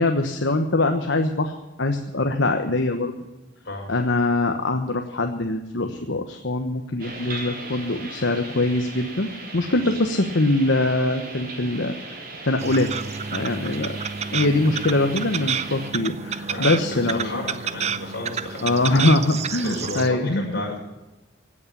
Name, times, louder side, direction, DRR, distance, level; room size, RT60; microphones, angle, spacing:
voice 1, 0.0-3.1 3.9-12.2 12.5-12.9 13.3-14.0 14.3-17.4 18.6-20.5, left 2 dB, 75° left, 5 dB, 1.2 m, -23 dB
sound 1, 7.0-15.9, right 2 dB, 50° right, 3.8 m, -38 dB
sound 2, 12.6-20.1, right 6 dB, 35° right, 0.6 m, -30 dB
voice 2, 16.4-19.2 19.6-20.8, left 2 dB, 55° left, -2 dB, 6.1 m, -33 dB
16.5 x 8.7 x 9.9 m, 1.1 s
head